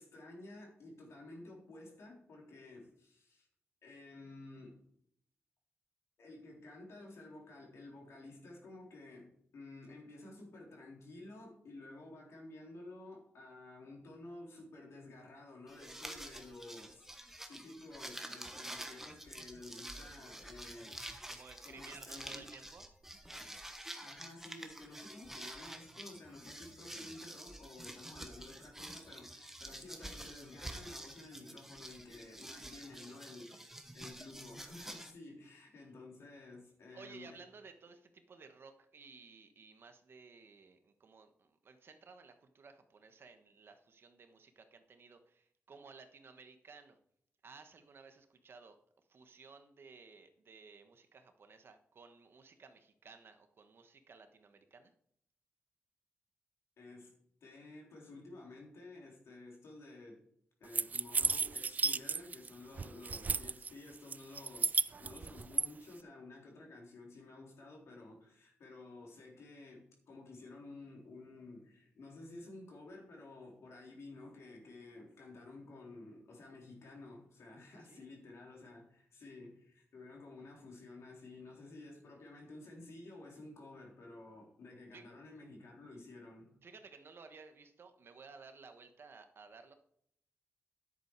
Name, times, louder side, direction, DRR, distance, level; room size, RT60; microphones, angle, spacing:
voice 1, 0.0-3.5 3.8-4.9 6.2-21.0 21.6-22.5 24.0-37.4 56.8-60.2 60.6-86.6, left 2 dB, 75° left, 3.7 m, -52 dB
sound 1, 15.7-35.1, right 1 dB, 5° right, 1.2 m, -48 dB
voice 2, 21.3-22.9 32.9-33.4 36.9-47.0 47.4-48.8 49.1-54.9 77.7-78.1 84.9-85.1 86.6-89.7, right 4 dB, 55° right, 1.3 m, -56 dB
sound 2, 60.7-62.5 62.8-63.7 64.1-65.7, right 4 dB, 35° right, 0.3 m, -33 dB
10.0 x 8.3 x 4.7 m
wide cardioid pair, 105°, 5 cm